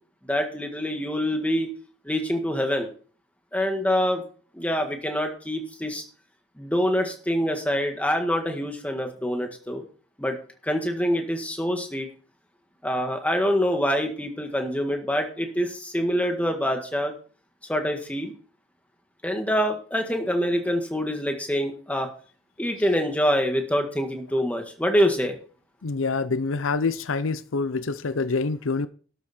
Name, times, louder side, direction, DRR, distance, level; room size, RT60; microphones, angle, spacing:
voice 1, 0.2-1.7 2.1-2.9 3.5-4.2 4.5-6.0 6.6-9.8 10.2-10.4 10.6-12.1 12.8-17.1 17.7-18.3 19.2-22.1 22.6-25.4, equal, 5° left, 1.8 m, -25 dB
voice 2, 25.8-28.9, left 4 dB, 85° left, 0.6 m, -26 dB
12.0 x 8.0 x 4.4 m
head